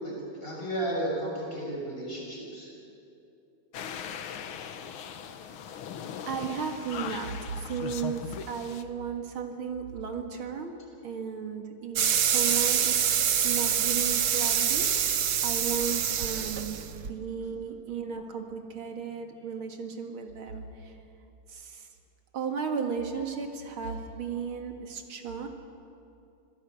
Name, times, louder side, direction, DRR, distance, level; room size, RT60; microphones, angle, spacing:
voice 1, 0.0-2.7 15.8-15.9 16.3-16.4, right 1 dB, 25° left, -4 dB, 6.9 m, -34 dB
sound 1, 3.7-8.8, left 8 dB, 75° left, 1.8 m, -39 dB
voice 2, 6.3-13.2 13.4-21.0 21.5-21.9 22.3-25.5, right 6 dB, 75° right, 4 dB, 2.7 m, -35 dB
sound 2, 12.0-17.1, right 8 dB, 55° right, 1.3 m, -26 dB
26.0 x 16.5 x 8.2 m, 2.7 s
omnidirectional pair, 2.3 m